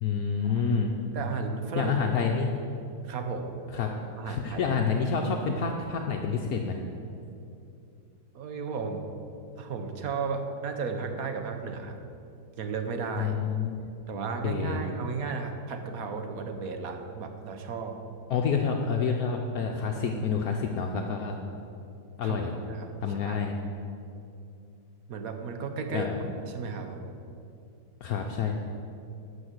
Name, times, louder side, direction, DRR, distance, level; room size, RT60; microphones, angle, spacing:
voice 1, 0.0-0.9 1.8-2.5 3.7-3.9 4.2-6.8 13.2-13.8 14.4-14.8 18.3-21.4 22.2-22.5 23.0-23.5 25.9-26.2 28.0-28.5, left 5 dB, 65° left, 2 dB, 1.2 m, -28 dB
voice 2, 1.1-2.0 3.0-3.5 4.2-4.6 8.3-9.1 9.6-12.0 12.6-13.3 14.1-18.0 22.2-22.4 22.7-23.5 25.1-26.1 26.5-27.1, right 5 dB, 60° right, 5 dB, 1.3 m, -34 dB
12.5 x 5.5 x 7.9 m, 2.6 s
omnidirectional pair, 1.7 m